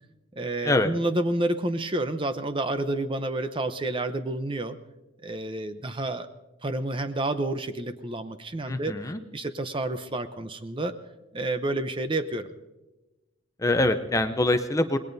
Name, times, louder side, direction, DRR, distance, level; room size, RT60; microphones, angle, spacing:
voice 1, 0.4-4.8 5.2-6.3 6.6-9.0 9.3-10.9 11.3-12.5, right 2 dB, 25° right, 10 dB, 0.7 m, -29 dB
voice 2, 8.7-9.2 13.6-15.0, left 2 dB, 15° left, 7 dB, 0.5 m, -24 dB
26.5 x 20.0 x 2.7 m, 1.0 s
head